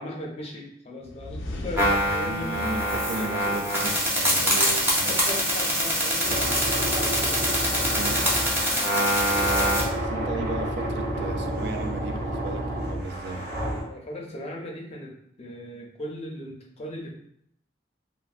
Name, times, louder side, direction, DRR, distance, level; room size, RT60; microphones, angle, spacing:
voice 1, 0.0-2.5 3.1-3.6 4.7-7.4 7.9-8.1 13.9-17.1, left 1 dB, 35° left, 0 dB, 0.5 m, -38 dB
sound 1, 1.0-4.0, left 1 dB, 85° left, 0.5 m, -37 dB
sound 2, 1.8-9.8, equal, 15° right, 0.6 m, -24 dB
voice 2, 2.2-5.1 6.3-6.4 8.0-8.2 10.0-13.5, right 3 dB, 65° right, 4 dB, 0.3 m, -35 dB
sound 3, 6.2-13.8, right 1 dB, 50° right, 1.1 m, -30 dB
3.2 x 2.1 x 2.4 m, 0.69 s
head